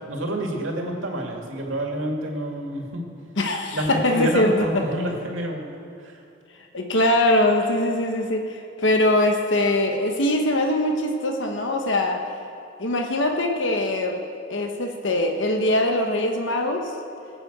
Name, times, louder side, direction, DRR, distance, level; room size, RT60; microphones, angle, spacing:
voice 1, 0.1-3.0 3.7-5.7 6.0-6.2, right 1 dB, 85° right, 1 dB, 2.2 m, -28 dB
voice 2, 3.4-4.7 6.7-12.2 12.8-14.2 14.5-16.9, left 1 dB, 70° left, 3 dB, 1.1 m, -22 dB
18.0 x 7.8 x 8.0 m, 2.5 s
head